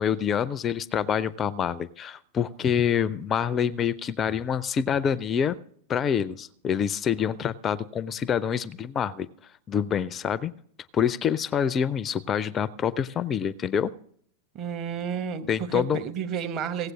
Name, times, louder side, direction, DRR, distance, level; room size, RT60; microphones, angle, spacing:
voice 1, 0.0-5.6 5.9-9.3 9.7-10.5 10.9-13.9 15.5-16.0, left 8 dB, 25° left, 20 dB, 0.4 m, -26 dB
voice 2, 14.5-16.9, right 7 dB, 35° right, 7 dB, 1.1 m, -31 dB
17.0 x 7.9 x 6.1 m, 0.62 s
figure-of-eight pair, 90°, 0 cm